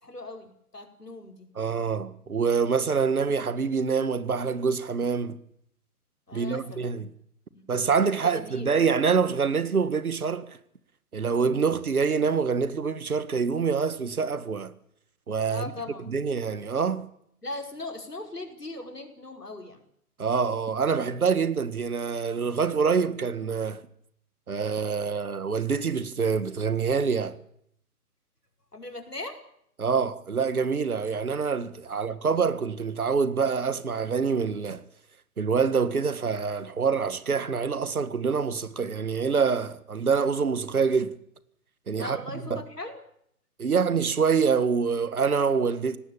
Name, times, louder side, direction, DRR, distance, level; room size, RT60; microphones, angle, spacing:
voice 1, 0.0-1.5 6.3-7.0 7.5-7.6 8.2-8.7 15.5-16.1 17.4-19.8 28.7-29.4 31.9-32.0 41.9-43.0, left 2 dB, 85° left, 5.3 m, -39 dB
voice 2, 1.6-5.4 6.3-7.1 7.7-10.6 11.1-14.7 15.3-15.6 16.1-17.1 20.2-23.8 24.5-27.4 29.8-34.8 35.4-41.1 41.9-42.6 43.6-46.0, right 5 dB, 65° right, 1.8 m, -26 dB
19.5 x 18.5 x 9.0 m
figure-of-eight pair, 135°, 46 cm